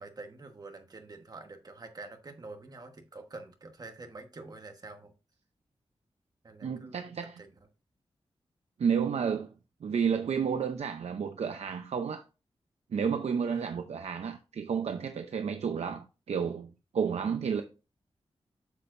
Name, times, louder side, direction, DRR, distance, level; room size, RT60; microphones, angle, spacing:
voice 1, 0.0-5.1 6.4-7.5 13.5-13.9, right 3 dB, 40° right, 1.3 m, -47 dB
voice 2, 6.6-7.4 8.8-9.5 9.8-12.2 12.9-17.6, right 6 dB, 90° right, 0.6 m, -31 dB
8.2 x 7.1 x 2.6 m
wide cardioid pair, 155°, 11 cm